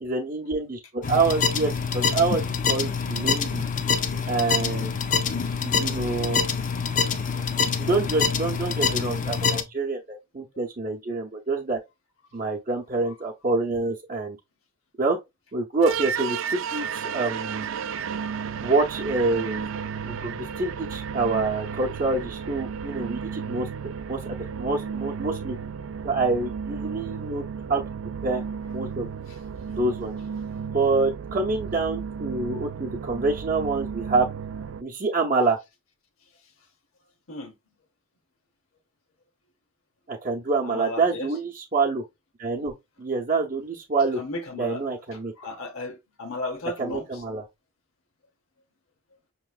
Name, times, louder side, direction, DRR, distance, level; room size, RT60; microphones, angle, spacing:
voice 1, 0.0-3.6 4.3-4.9 5.6-6.4 7.8-11.8 12.3-14.4 15.0-15.2 15.5-17.7 18.6-19.7 20.0-23.7 24.1-25.6 26.0-27.4 27.7-27.8 28.2-28.4 28.7-29.1 29.8-30.1 30.7-34.3 34.8-35.6 40.1-42.0 42.4-44.2 44.6-45.3 46.8-47.4, right 3 dB, 40° right, 0.7 m, -26 dB
sound 1, 1.0-9.6, left 5 dB, 40° left, 0.5 m, -25 dB
sound 2, 15.8-34.8, right 6 dB, 70° right, 0.3 m, -33 dB
voice 2, 40.7-41.3 44.2-44.8 45.1-47.2, left 2 dB, 85° left, 0.9 m, -35 dB
5.7 x 3.0 x 2.3 m
head